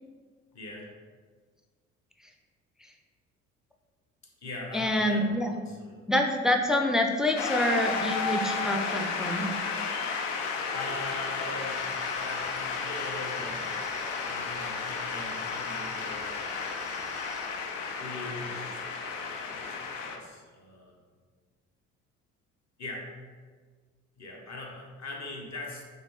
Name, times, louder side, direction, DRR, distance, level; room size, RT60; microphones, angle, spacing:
voice 1, 0.5-0.9 4.4-6.0 10.7-11.9 12.1-16.9 18.0-21.0 22.8-23.1 24.2-25.8, left 2 dB, 45° left, -1 dB, 1.1 m, -42 dB
voice 2, 4.7-5.6 6.1-9.5, left 1 dB, ahead, 2 dB, 0.3 m, -26 dB
Shout / Cheering / Applause, 7.4-20.2, left 5 dB, 75° left, 0.5 m, -33 dB
sound 1, 11.7-17.5, left 1 dB, 20° left, 0.9 m, -46 dB
4.0 x 3.1 x 3.2 m, 1.5 s
figure-of-eight pair, 40°, 38 cm